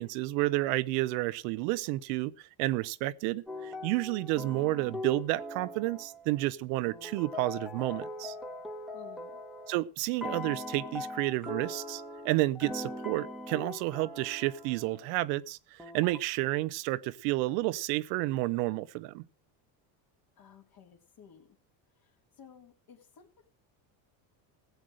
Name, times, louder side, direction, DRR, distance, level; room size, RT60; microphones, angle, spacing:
voice 1, 0.0-8.3 9.7-19.2, right 18 dB, 80° right, 0.9 m, -31 dB
sound 1, 3.5-6.4 6.9-9.8 10.2-15.1 15.8-16.2, left 2 dB, ahead, 1.3 m, -41 dB
voice 2, 8.9-9.4 20.4-21.5 22.0-23.5, left 7 dB, 45° left, 3.1 m, -55 dB
16.0 x 8.1 x 6.3 m
supercardioid pair, 115°, 48 cm